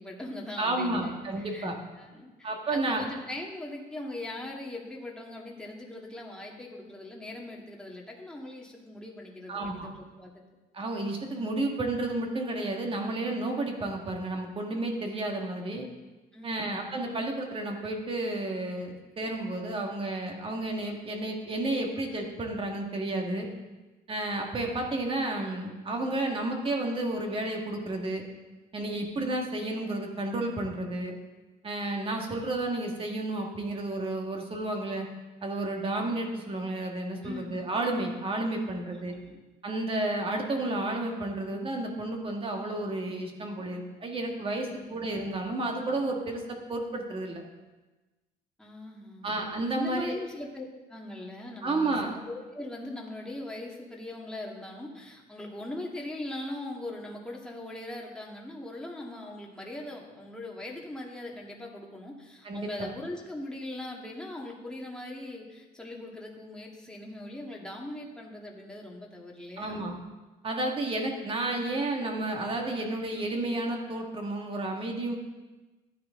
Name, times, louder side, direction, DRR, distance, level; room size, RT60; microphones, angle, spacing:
voice 1, 0.0-1.7 1.9-10.5 16.3-16.9 37.2-37.6 38.9-39.4 44.6-44.9 48.6-49.3 49.7-69.8, left 1 dB, 5° left, -2 dB, 1.8 m, -40 dB
voice 2, 0.6-1.8 2.4-3.0 9.5-9.9 10.7-15.9 16.4-23.5 24.1-28.2 28.7-31.2 31.6-35.1 35.4-39.2 39.6-47.4 49.2-50.2 51.6-52.1 62.4-62.9 69.6-69.9 70.4-75.2, right 2 dB, 30° right, 2 dB, 1.9 m, -31 dB
12.5 x 9.3 x 3.8 m, 1.2 s
cardioid pair, 110°, 17 cm